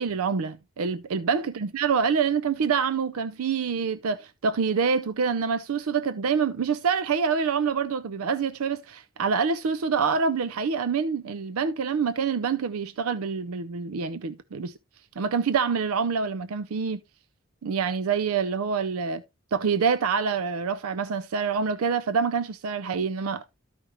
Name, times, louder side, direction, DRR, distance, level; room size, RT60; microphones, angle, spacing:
voice 1, 0.0-14.7 15.2-17.0 17.6-19.2 19.5-23.4, right 5 dB, 80° right, 0.5 m, -26 dB
13.0 x 5.1 x 3.0 m
head